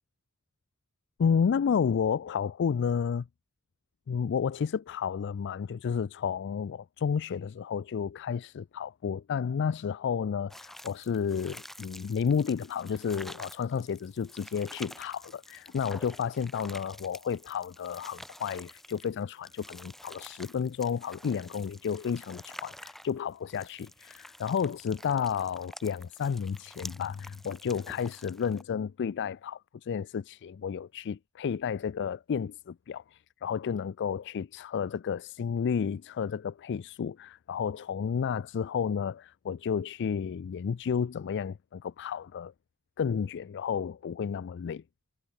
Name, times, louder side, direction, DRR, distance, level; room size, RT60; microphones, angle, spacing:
voice 1, 1.2-3.3 4.1-42.5 43.0-44.8, left 7 dB, 55° left, 0.4 m, -31 dB
sound 1, 10.5-28.6, equal, ahead, 0.7 m, -49 dB
head